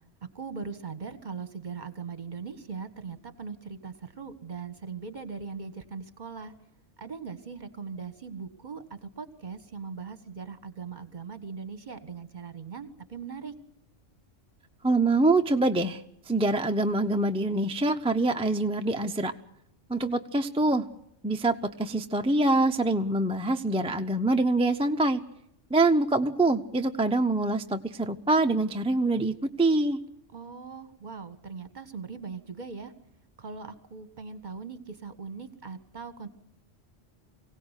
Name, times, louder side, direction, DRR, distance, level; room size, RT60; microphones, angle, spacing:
voice 1, 0.3-6.5 7.0-13.5 30.3-32.9 33.4-36.3, right 5 dB, 40° right, 11 dB, 1.7 m, -40 dB
voice 2, 14.8-16.0 16.3-19.3 19.9-20.8 21.2-25.2 25.7-30.0, right 2 dB, 5° right, 6 dB, 0.6 m, -25 dB
24.5 x 17.0 x 8.2 m, 0.79 s
omnidirectional pair, 1.3 m